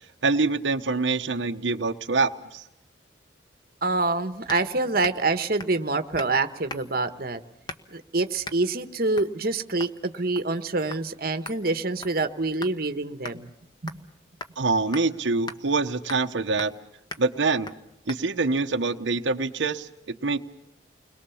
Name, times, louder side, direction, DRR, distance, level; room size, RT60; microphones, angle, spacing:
voice 1, 0.2-2.6 14.6-16.7 17.2-17.7 18.1-20.4, right 3 dB, 80° right, 5 dB, 1.0 m, -25 dB
voice 2, 3.8-7.4 7.9-13.5 13.8-13.9, right 3 dB, 50° right, 8 dB, 1.2 m, -26 dB
sound 1, 4.5-4.7 5.0-5.3 5.6-5.8 6.2-6.4 6.7-7.0 7.7-8.0 8.4-8.6 9.2-9.3 9.8-10.0 10.4-10.6 10.9-11.0 11.5-12.8 13.2-13.4 13.9-14.1 14.4-14.6 14.9-15.1 15.5-15.6 16.1-16.3 16.6-16.8 17.1-17.3 17.7-17.8 18.1-18.2, left 3 dB, 25° left, 1.1 m, -39 dB
30.0 x 22.0 x 7.1 m, 0.79 s
head